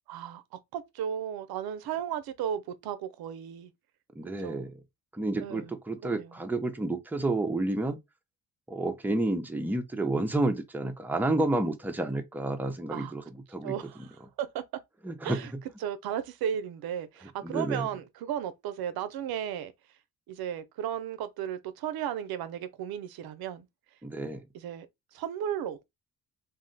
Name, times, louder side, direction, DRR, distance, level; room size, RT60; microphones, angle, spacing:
voice 1, 0.1-3.7 4.4-4.7 5.4-5.7 6.0-6.4 12.9-13.1 13.6-14.6 15.2-15.5 15.8-19.7 20.3-23.7 24.5-24.9 25.1-25.8, right 9 dB, 90° right, 0.6 m, -35 dB
voice 2, 4.2-4.7 5.1-8.0 8.7-13.2 13.5-13.7 15.0-15.4 17.4-17.9 24.0-24.4, right 2 dB, 5° right, 0.5 m, -30 dB
2.6 x 2.1 x 3.8 m
cardioid pair, 110°, 36 cm